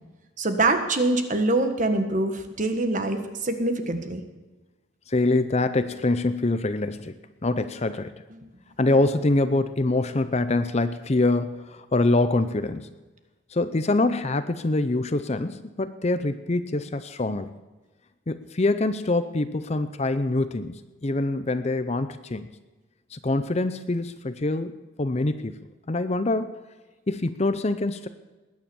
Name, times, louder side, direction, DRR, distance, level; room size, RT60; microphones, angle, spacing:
voice 1, 0.4-4.2, right 2 dB, 35° right, 7 dB, 1.5 m, -24 dB
voice 2, 5.1-7.2 7.4-8.1 8.8-12.9 13.5-17.5 18.3-22.5 23.1-25.5 25.9-26.6 27.1-28.1, left 2 dB, 30° left, 11 dB, 0.6 m, -25 dB
20.5 x 9.7 x 7.1 m, 1.2 s
head